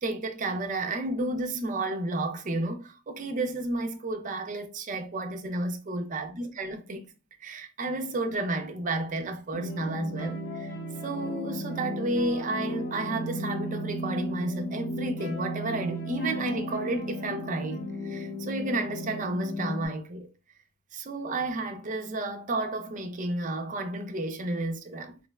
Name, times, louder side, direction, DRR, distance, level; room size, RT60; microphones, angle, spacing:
voice 1, 0.0-7.1 7.4-10.7 11.0-20.3 20.9-25.2, right 2 dB, 40° right, 0.5 m, -32 dB
sound 1, 9.5-19.9, equal, 45° left, 0.7 m, -35 dB
3.8 x 2.1 x 2.2 m
head